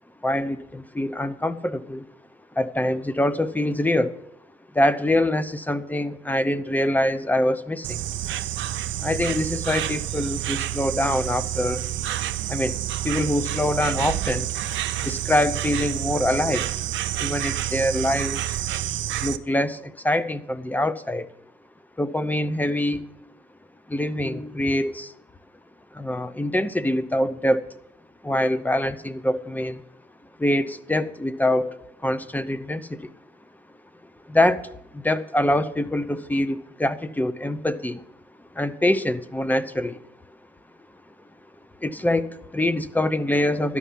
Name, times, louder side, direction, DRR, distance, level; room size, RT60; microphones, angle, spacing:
voice 1, 0.2-2.0 2.6-4.2 4.7-8.0 9.0-11.9 12.5-12.8 13.0-14.5 15.0-16.7 17.2-18.5 19.2-21.3 22.0-23.0 23.9-25.1 25.9-27.7 28.2-29.8 30.4-33.1 34.3-38.0 38.5-40.0 41.8-43.8, left 1 dB, 10° left, 14 dB, 0.7 m, -24 dB
Insect, 7.8-19.4, right 13 dB, 75° right, 0.6 m, -28 dB
12.5 x 5.6 x 9.2 m, 0.79 s
cardioid pair, 90°, 20 cm